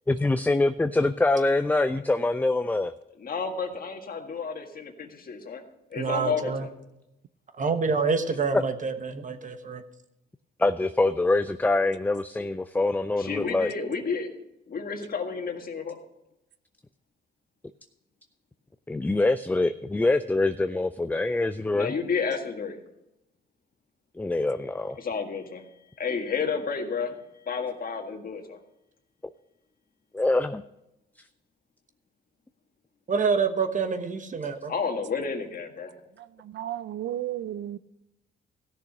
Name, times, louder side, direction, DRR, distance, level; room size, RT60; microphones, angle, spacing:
voice 1, 0.1-2.9 8.5-8.6 10.6-13.7 18.9-21.9 24.2-25.0 30.1-30.6, left 2 dB, 10° left, 11 dB, 0.4 m, -24 dB
voice 2, 3.3-5.6 5.9-6.5 13.2-14.3 14.7-15.9 21.7-22.7 25.0-25.6 26.0-27.1 27.5-28.6 34.7-35.9, left 5 dB, 45° left, 4 dB, 1.8 m, -31 dB
voice 3, 6.0-6.7 7.6-9.8 33.1-34.7, right 5 dB, 40° right, 9 dB, 1.1 m, -27 dB
voice 4, 36.2-37.8, right 12 dB, 65° right, 15 dB, 0.5 m, -34 dB
14.5 x 6.6 x 5.9 m, 0.88 s
cardioid pair, 90°, 20 cm